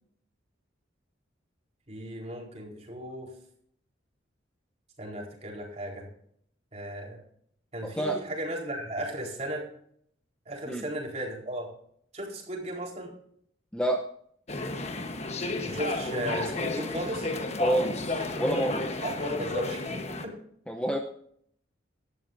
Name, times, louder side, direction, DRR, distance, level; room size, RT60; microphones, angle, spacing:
voice 1, 1.9-3.3 5.0-6.1 6.7-7.2 7.7-9.6 10.5-11.7 12.1-13.1 15.6-17.3 19.0-20.3, right 1 dB, 35° right, -1 dB, 4.4 m, -36 dB
voice 2, 7.8-8.2 10.7-10.8 13.7-14.1 17.6-18.9 20.7-21.0, right 1 dB, 5° left, 2 dB, 0.7 m, -28 dB
sound 1, 14.5-20.2, left 2 dB, 35° left, 1.2 m, -32 dB
17.5 x 12.5 x 2.7 m, 0.66 s
head